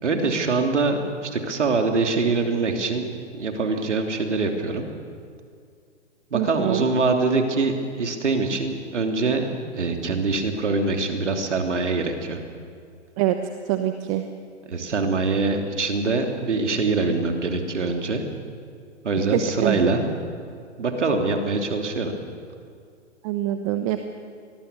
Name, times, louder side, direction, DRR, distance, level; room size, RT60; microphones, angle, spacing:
voice 1, 0.0-3.0 3.3-4.9 6.3-12.4 14.7-18.2 19.0-20.0 20.8-22.1, right 3 dB, 75° right, 3 dB, 3.2 m, -24 dB
voice 2, 6.3-6.8 13.2-13.4 13.7-14.2 19.3-19.8 23.2-24.0, right 13 dB, 30° right, 8 dB, 1.0 m, -24 dB
24.5 x 20.0 x 6.9 m, 2.3 s
figure-of-eight pair, 130°, 36 cm